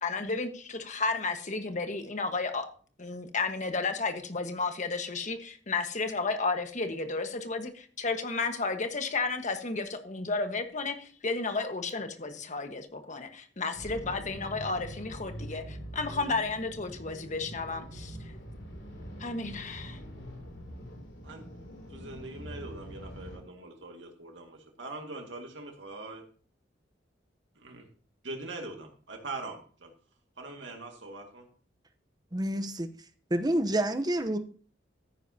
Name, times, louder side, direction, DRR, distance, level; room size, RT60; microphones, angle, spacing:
voice 1, 0.0-2.7 3.0-18.2 19.2-20.0, left 3 dB, 40° left, 1.4 m, -32 dB
sound 1, 13.7-23.4, equal, 75° left, 3.2 m, -43 dB
voice 2, 21.9-26.2 27.6-27.9 28.2-29.9 30.4-31.5, right 2 dB, 85° right, 2.1 m, -42 dB
voice 3, 32.3-32.9 33.3-34.4, right 1 dB, 20° right, 0.9 m, -28 dB
14.0 x 9.9 x 2.8 m
head